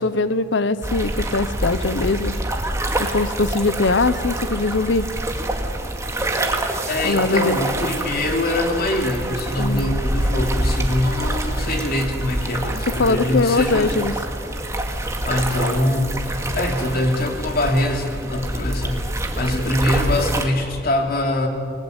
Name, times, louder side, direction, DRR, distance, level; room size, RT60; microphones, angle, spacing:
voice 1, 0.0-2.3 3.0-5.1 7.0-7.6 9.6-9.8 13.0-14.1, left 3 dB, 75° left, 14 dB, 0.8 m, -21 dB
sound 1, 0.8-20.5, right 1 dB, 15° right, 2.1 m, -26 dB
voice 2, 6.9-13.9 15.2-16.3 16.5-21.5, left 1 dB, 55° left, 3 dB, 3.1 m, -23 dB
28.5 x 20.0 x 8.1 m, 2.4 s
head